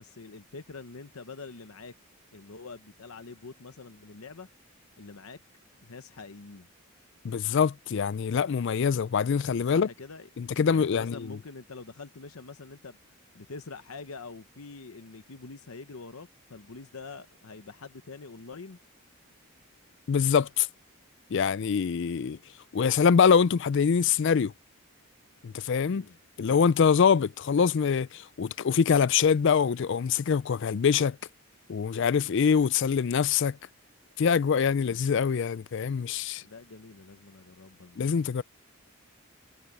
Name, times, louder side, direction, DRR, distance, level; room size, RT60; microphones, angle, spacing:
voice 1, 0.0-1.9 2.3-4.5 5.0-5.4 5.8-6.7 9.7-10.3 10.7-13.0 13.3-18.8 25.8-26.2 36.4-38.3, left 4 dB, 80° left, 0.9 m, -45 dB
voice 2, 7.2-9.9 10.4-11.4 20.1-20.7 21.3-22.4 22.7-24.5 25.4-26.0 26.4-31.2 31.7-33.6 34.2-36.4 38.0-38.4, left 6 dB, 55° left, 0.4 m, -24 dB
head